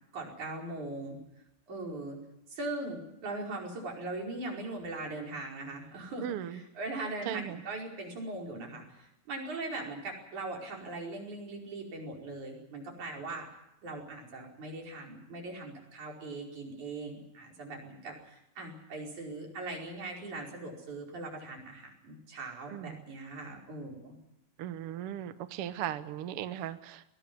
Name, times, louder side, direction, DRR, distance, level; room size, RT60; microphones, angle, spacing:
voice 1, 0.1-1.2 1.7-2.2 2.5-13.5 13.8-24.1, right 2 dB, 55° right, 0 dB, 6.5 m, -40 dB
voice 2, 6.2-6.6 7.2-7.6 22.7-23.0 24.6-27.0, right 11 dB, 75° right, 12 dB, 1.3 m, -37 dB
21.0 x 18.5 x 9.6 m, 0.85 s
omnidirectional pair, 4.0 m